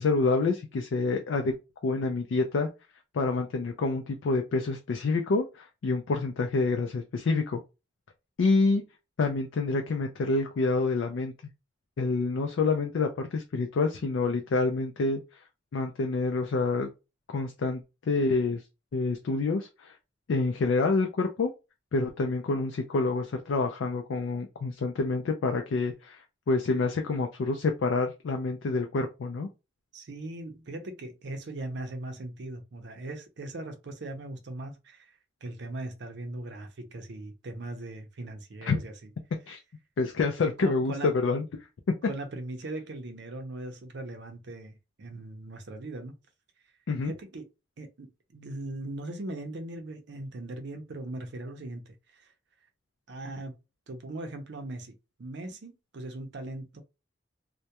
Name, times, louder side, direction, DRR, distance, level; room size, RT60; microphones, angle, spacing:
voice 1, 0.0-1.5 1.8-2.7 3.1-7.6 8.4-8.8 9.2-11.3 12.0-15.2 15.7-16.9 17.3-18.6 18.9-19.9 20.3-21.5 21.9-26.2 26.5-29.5 38.6-38.8 39.5-39.6 40.0-41.5 46.9-47.1, left 3 dB, 80° left, 0.4 m, -27 dB
voice 2, 29.9-35.1 35.4-38.9 40.6-41.1 42.1-46.2 47.0-47.5 47.8-52.3 53.1-53.5 53.9-56.8, right 2 dB, 65° right, 0.5 m, -39 dB
2.2 x 2.1 x 2.8 m
head